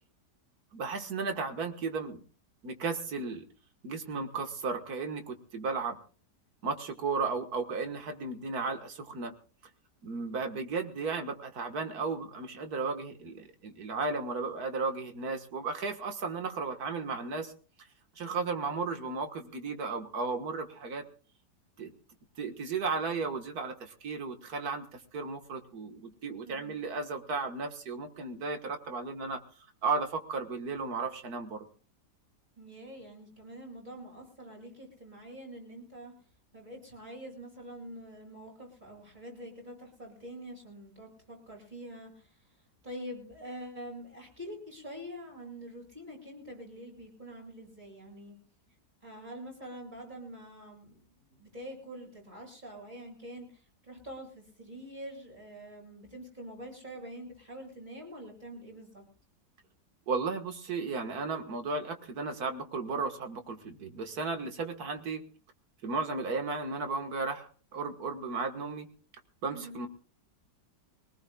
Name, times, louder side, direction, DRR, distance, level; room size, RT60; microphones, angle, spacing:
voice 1, 0.7-2.2 2.6-3.4 3.8-6.0 6.6-9.3 10.0-17.5 18.2-21.0 21.8-21.9 22.4-29.4 29.8-31.7 60.1-65.2 65.8-68.9 69.4-69.9, right 4 dB, 60° right, 6 dB, 2.0 m, -34 dB
voice 2, 26.4-26.8 32.6-36.1 36.5-42.4 42.8-48.4 49.0-59.0 69.5-69.8, equal, 25° right, -1 dB, 7.7 m, -45 dB
24.0 x 19.0 x 2.3 m, 0.39 s
omnidirectional pair, 1.8 m